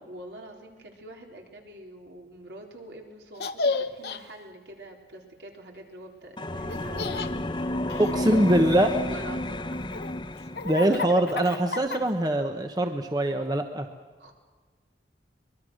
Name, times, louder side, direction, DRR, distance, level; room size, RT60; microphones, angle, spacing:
voice 1, 0.1-9.7 10.5-10.7 14.2-14.3, right 1 dB, 70° right, 1 dB, 4.1 m, -45 dB
Laughter, 3.3-4.2 6.7-7.3 7.9-9.1 9.7-12.3, left 3 dB, 60° left, 1.0 m, -32 dB
sound 1, 6.4-11.0, left 1 dB, 25° left, 0.8 m, -31 dB
voice 2, 8.0-8.9 10.6-13.9, right 1 dB, 20° right, 5 dB, 1.1 m, -23 dB
24.5 x 21.5 x 6.4 m, 1.5 s
head